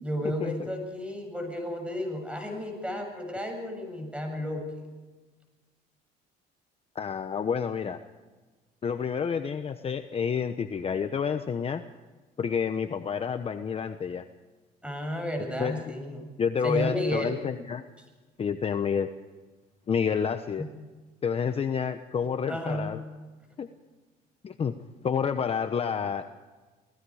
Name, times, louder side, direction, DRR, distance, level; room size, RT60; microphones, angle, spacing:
voice 1, 0.0-4.7 14.8-16.2 16.6-17.4 20.6-20.7 22.5-23.0, equal, 5° right, 4 dB, 7.5 m, -32 dB
voice 2, 6.9-8.0 8.8-11.8 12.4-14.2 15.6-15.8 16.4-17.8 18.4-19.1 19.9-20.6 21.2-23.0 23.6-23.7 24.4-24.7 25.0-26.2, left 6 dB, 35° left, 8 dB, 1.0 m, -29 dB
29.0 x 19.0 x 5.0 m, 1.3 s
cardioid pair, 110°, 17 cm